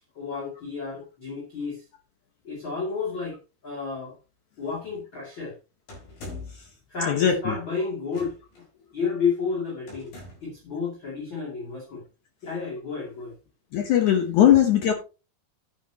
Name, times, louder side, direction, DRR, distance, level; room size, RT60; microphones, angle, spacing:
voice 1, 0.1-1.8 2.4-3.4 3.6-4.1 4.6-5.6 6.9-8.4 8.9-12.0 12.4-13.3, left 5 dB, 35° left, 2.9 m, -31 dB
sound 1, 5.9-6.7 8.1-8.6 9.9-10.6, left 3 dB, 55° left, 6.6 m, -42 dB
voice 2, 7.1-7.6 13.7-14.9, left 10 dB, 70° left, 1.8 m, -20 dB
10.0 x 10.0 x 2.9 m
omnidirectional pair, 4.8 m